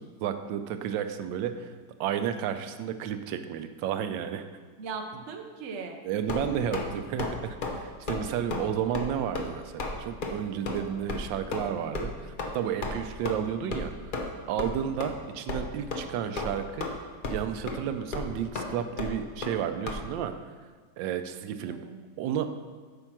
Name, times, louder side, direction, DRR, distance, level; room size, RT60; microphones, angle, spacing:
voice 1, 0.0-4.5 6.0-13.9 14.5-16.9 17.3-20.3 21.0-21.8 22.2-22.5, right 9 dB, 90° right, 9 dB, 1.3 m, -32 dB
voice 2, 4.8-6.0 21.6-22.0, right 4 dB, 50° right, 4 dB, 0.9 m, -38 dB
sound 1, 6.3-6.9 7.2-7.3 7.6-7.8 8.1-8.2 8.5-8.6 8.9-9.1 9.3-9.5 9.8-9.9 10.2-10.3 10.7-10.8 11.1-11.2 11.5-11.7 11.9-12.1 12.4-12.5 12.8-12.9 13.2-13.3 13.7-13.9 14.1-14.3 14.6-14.7 15.0-15.1 15.5-15.6 15.9-16.1 16.4-16.9 17.2-17.4 17.7-17.8 18.1-18.3 18.5-18.7 19.0-19.1 19.4-19.5 19.9-20.0, left 3 dB, 55° left, 0.5 m, -32 dB
8.8 x 4.6 x 6.0 m, 1.4 s
omnidirectional pair, 2.0 m